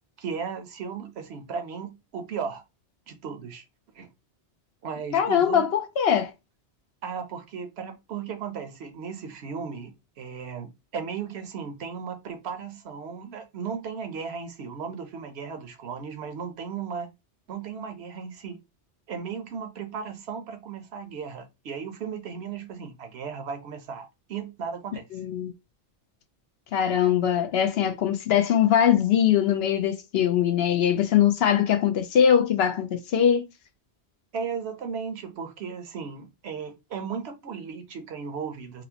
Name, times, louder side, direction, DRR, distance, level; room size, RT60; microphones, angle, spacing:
voice 1, 0.2-2.6 3.1-3.6 3.9-4.1 4.8-5.7 6.1-6.2 7.0-17.1 17.5-18.6 19.1-25.1 34.3-38.8, right 6 dB, 70° right, 0.9 m, -36 dB
voice 2, 5.1-6.3 25.1-25.5 26.7-33.4, left 9 dB, 70° left, 0.8 m, -22 dB
4.1 x 2.0 x 2.8 m
omnidirectional pair, 1.2 m